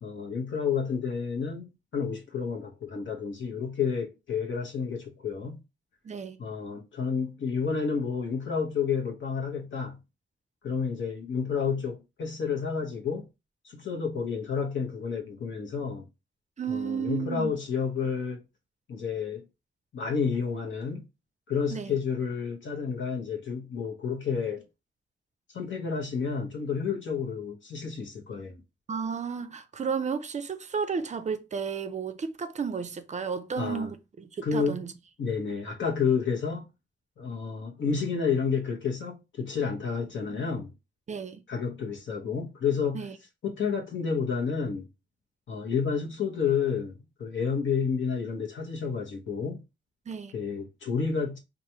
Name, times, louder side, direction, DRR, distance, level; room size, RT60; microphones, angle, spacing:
voice 1, 0.0-1.7 1.9-5.6 6.4-10.0 10.6-13.3 13.6-16.0 16.7-18.4 18.9-19.4 19.9-21.0 21.5-24.6 25.5-28.6 33.6-33.9 34.4-34.8 35.2-36.6 37.2-40.7 41.5-43.0 43.4-44.9 45.5-49.6 50.3-51.4, left 6 dB, 85° left, 1.0 m, -30 dB
voice 2, 6.0-6.4 16.6-17.6 21.7-22.0 28.9-34.9 41.1-41.4 42.9-43.2 50.1-50.3, right 6 dB, 40° right, 0.4 m, -33 dB
4.6 x 2.5 x 2.8 m
wide cardioid pair, 170°, 19 cm